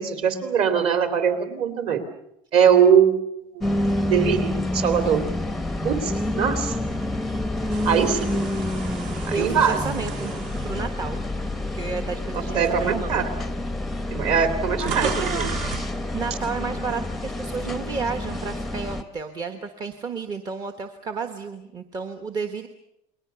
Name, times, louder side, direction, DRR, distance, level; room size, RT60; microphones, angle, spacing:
voice 1, 0.0-2.0 2.5-3.2 3.5-3.7 4.1-5.2 5.8-6.7 7.8-8.4 9.3-9.8 12.5-13.3 14.1-15.4, right 7 dB, 45° right, 9 dB, 3.1 m, -21 dB
sound 1, 3.6-19.0, left 1 dB, ahead, 0.9 m, -28 dB
sound 2, 7.7-11.9 12.5-12.7 13.6-13.7 13.9-15.9, right 6 dB, 60° right, 4.6 m, -35 dB
voice 2, 9.3-10.3 10.6-11.2 11.7-13.2 14.8-15.5 15.8-22.7, right 5 dB, 25° right, 7 dB, 1.3 m, -32 dB
29.0 x 21.5 x 6.9 m, 0.79 s
cardioid pair, 175°, 15 cm